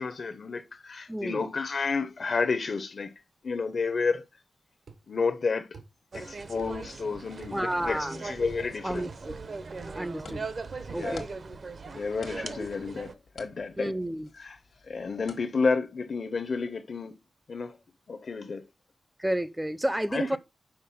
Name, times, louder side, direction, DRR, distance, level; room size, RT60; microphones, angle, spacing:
voice 1, 0.0-3.1 3.4-4.3 5.1-5.7 6.1-9.1 10.9-11.2 11.9-13.9 14.4-14.6 14.9-17.2 17.5-17.8 18.1-18.6 20.1-20.4, left 4 dB, 55° left, 0.6 m, -31 dB
voice 2, 1.1-1.4 7.5-8.2 8.8-9.1 9.9-10.5 10.9-11.2 13.8-14.3 19.2-20.4, right 1 dB, 5° right, 0.5 m, -30 dB
sound 1, 4.9-5.1 5.7-6.3 7.4-7.6 8.6-8.8 9.1-9.3 10.3-10.5, right 4 dB, 80° right, 1.3 m, -47 dB
sound 2, 6.1-13.1, right 4 dB, 55° right, 0.8 m, -40 dB
sound 3, 10.0-15.4, left 4 dB, 85° left, 1.3 m, -51 dB
5.8 x 4.5 x 5.5 m
wide cardioid pair, 115°, 0 cm